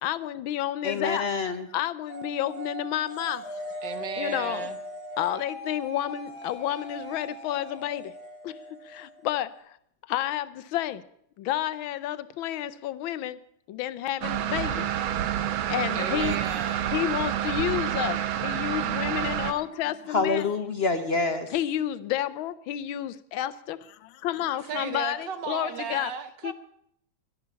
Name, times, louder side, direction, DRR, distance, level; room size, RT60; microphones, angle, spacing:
voice 1, 0.0-1.3 1.7-3.8 4.2-4.7 5.2-8.1 8.4-9.8 10.1-11.0 11.4-13.4 13.7-14.9 15.7-16.5 16.9-20.5 21.5-26.1 26.4-26.5, left 12 dB, 90° left, 15 dB, 1.5 m, -30 dB
voice 2, 0.8-1.7 20.1-21.5, left 3 dB, 45° left, 8 dB, 0.9 m, -26 dB
sound 1, 2.1-9.6, right 1 dB, 40° right, 8.3 m, -40 dB
voice 3, 3.8-4.8 15.9-16.9 24.7-26.5, right 7 dB, 65° right, 11 dB, 1.7 m, -35 dB
sound 2, 14.2-19.5, right 11 dB, 85° right, 1.7 m, -28 dB
12.0 x 11.0 x 8.2 m, 0.72 s
omnidirectional pair, 2.1 m